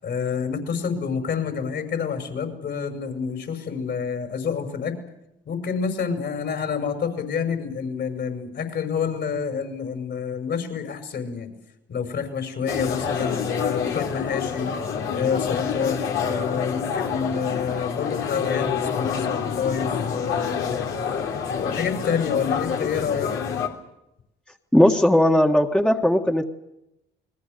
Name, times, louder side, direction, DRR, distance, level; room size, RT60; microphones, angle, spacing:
voice 1, 0.0-4.9 5.5-11.5 11.9-14.7 15.1-20.9 21.5-23.3, left 6 dB, 60° left, 6 dB, 6.1 m, -28 dB
sound 1, 12.7-23.7, left 6 dB, 90° left, 3.3 m, -27 dB
voice 2, 24.7-26.5, left 1 dB, 5° left, 3 dB, 1.6 m, -18 dB
29.0 x 21.5 x 6.8 m, 0.86 s
cardioid pair, 90°, 20 cm